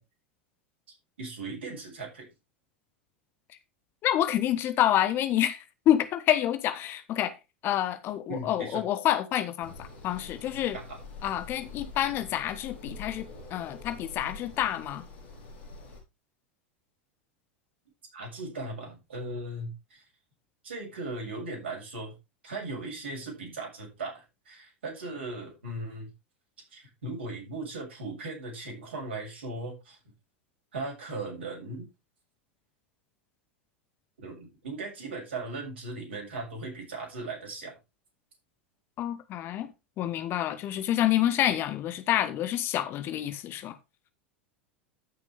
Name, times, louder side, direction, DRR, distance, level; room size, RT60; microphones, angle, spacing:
voice 1, 1.2-2.3 8.3-8.8 18.1-20.0 20.6-22.1 22.4-26.1 26.7-30.0 30.7-31.9 34.2-37.8, right 2 dB, 70° right, 6.9 m, -38 dB
voice 2, 4.0-7.3 7.6-10.8 11.2-15.0 39.0-39.7 40.0-43.8, left 12 dB, 35° left, 1.2 m, -28 dB
sound 1, 9.6-16.0, left 3 dB, 65° left, 4.5 m, -45 dB
14.0 x 6.6 x 3.5 m
figure-of-eight pair, 85°, 6 cm